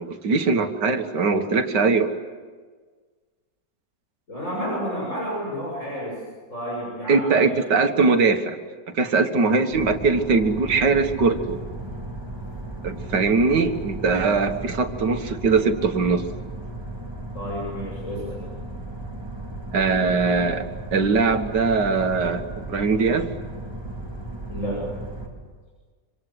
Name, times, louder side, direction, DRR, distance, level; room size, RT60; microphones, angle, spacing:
voice 1, 0.0-2.1 7.1-8.6 8.9-11.6 12.8-16.2 19.7-20.7 20.9-23.3, right 4 dB, 85° right, 7 dB, 2.2 m, -21 dB
voice 2, 4.3-6.2 6.5-7.6 17.3-18.4 24.5-24.8, equal, 45° left, -4 dB, 7.5 m, -30 dB
sound 1, 9.7-25.3, right 1 dB, 15° right, 4.3 m, -35 dB
26.5 x 26.0 x 7.9 m, 1.5 s
omnidirectional pair, 1.8 m